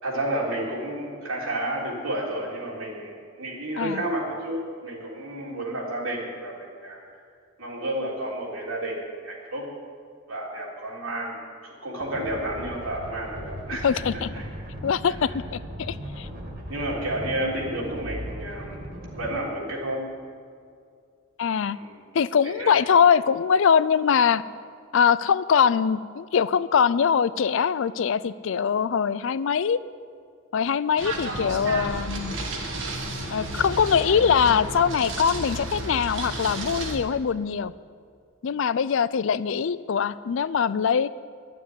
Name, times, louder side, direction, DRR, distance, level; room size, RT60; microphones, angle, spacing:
voice 1, 0.0-7.0 7.6-9.7 10.3-14.0 14.3-14.5 15.1-15.2 16.7-18.9 19.2-20.1 21.7-22.0 22.4-22.7, right 1 dB, 75° right, -3 dB, 3.4 m, -31 dB
sound 1, 12.0-19.3, equal, 45° right, 2.4 m, -38 dB
voice 2, 13.8-14.3 14.8-16.3 21.4-21.8 22.1-24.4 24.9-29.8 30.5-32.4 33.3-37.7 38.4-41.1, left 7 dB, 60° left, 17 dB, 0.4 m, -22 dB
sound 2, 31.0-37.0, right 2 dB, 60° right, 1.7 m, -32 dB
12.0 x 7.3 x 9.8 m, 2.2 s
head